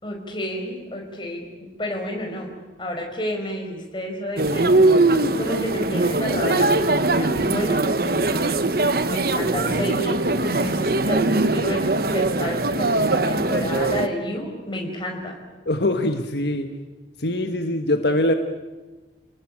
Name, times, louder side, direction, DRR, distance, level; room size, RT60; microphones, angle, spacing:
voice 1, 0.0-2.5 2.8-5.0 5.4-8.3 9.1-15.4, equal, 25° left, 2 dB, 5.0 m, -30 dB
sound 1, 4.4-14.1, right 2 dB, 55° right, 1.2 m, -21 dB
voice 2, 15.6-16.7 17.2-18.3, left 1 dB, 65° left, 6 dB, 1.4 m, -22 dB
30.0 x 19.5 x 8.7 m, 1.2 s
head